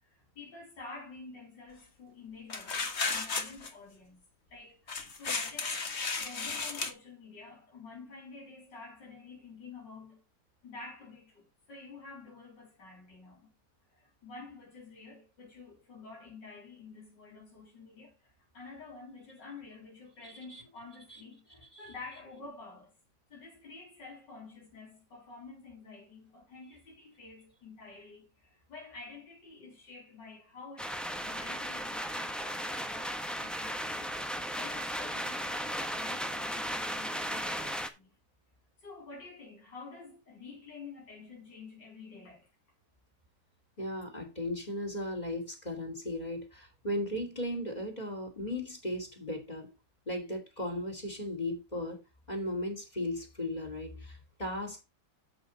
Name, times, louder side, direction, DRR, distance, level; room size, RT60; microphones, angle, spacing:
voice 1, 0.0-4.2 4.5-5.8 6.2-10.2 10.6-13.5 13.9-22.9 23.3-34.1 34.6-38.1 38.8-42.5, left 4 dB, 90° left, 4.5 m, -49 dB
sound 1, 2.5-3.7 4.9-6.9, left 4 dB, 40° left, 1.6 m, -34 dB
sound 2, 30.8-37.9, equal, ahead, 0.9 m, -36 dB
voice 2, 43.8-49.7 50.1-54.8, left 1 dB, 25° left, 2.8 m, -36 dB
8.6 x 7.9 x 4.1 m
omnidirectional pair, 1.9 m